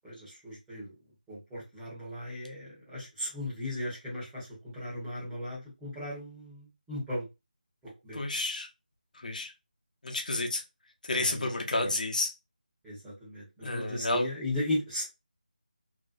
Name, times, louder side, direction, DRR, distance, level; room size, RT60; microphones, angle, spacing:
voice 1, 0.0-0.9 1.3-7.3 8.0-8.2 11.1-11.5 11.8-11.9 12.8-15.1, left 1 dB, 5° right, 1.1 m, -36 dB
voice 2, 8.1-8.7 9.1-9.5 10.0-10.6 11.0-12.3 13.6-14.3, left 2 dB, 55° left, 0.9 m, -30 dB
2.9 x 2.8 x 2.5 m
figure-of-eight pair, 170°, 5 cm